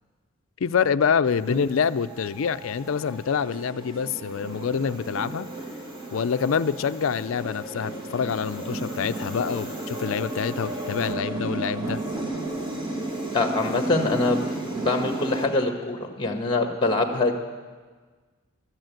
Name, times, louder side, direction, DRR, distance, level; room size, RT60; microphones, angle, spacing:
voice 1, 0.6-5.5 6.1-12.0, left 6 dB, 70° left, 14 dB, 0.4 m, -26 dB
sound 1, 1.3-15.5, right 2 dB, 20° right, 1.7 m, -34 dB
voice 2, 13.3-17.3, left 2 dB, 20° left, 4 dB, 1.4 m, -24 dB
13.0 x 9.1 x 9.0 m, 1.4 s
head